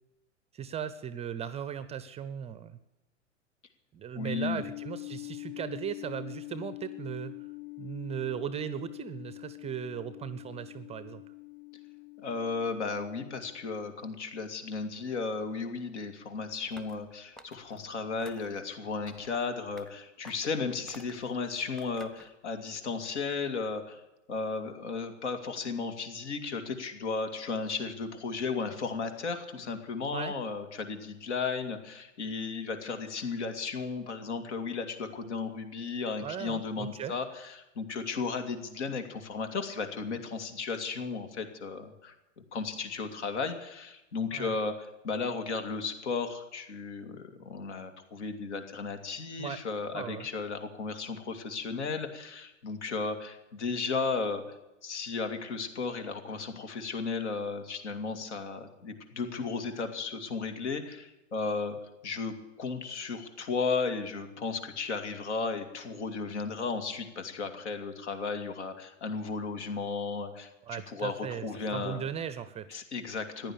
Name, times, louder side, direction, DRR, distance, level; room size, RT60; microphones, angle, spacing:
voice 1, 0.5-2.8 3.9-7.3 7.8-11.2 30.1-30.3 36.2-37.2 44.3-44.5 49.4-49.6 49.9-50.3 70.7-71.5 71.7-72.8, right 8 dB, 15° right, 14 dB, 0.7 m, -37 dB
voice 2, 4.2-4.6 12.2-24.0 24.3-42.2 42.5-54.4 54.8-61.8 62.0-72.0 72.7-73.5, left 4 dB, 65° left, 7 dB, 2.5 m, -34 dB
sound 1, 4.6-13.6, left 24 dB, 35° left, 1.5 m, -45 dB
sound 2, 16.7-17.0 17.4-17.8 18.2-18.6 19.1-19.4 19.8-19.9 20.2-20.5 20.9-21.3 21.8-22.3, right 1 dB, ahead, 1.0 m, -51 dB
15.0 x 10.5 x 8.8 m, 0.96 s
figure-of-eight pair, 100°, 38 cm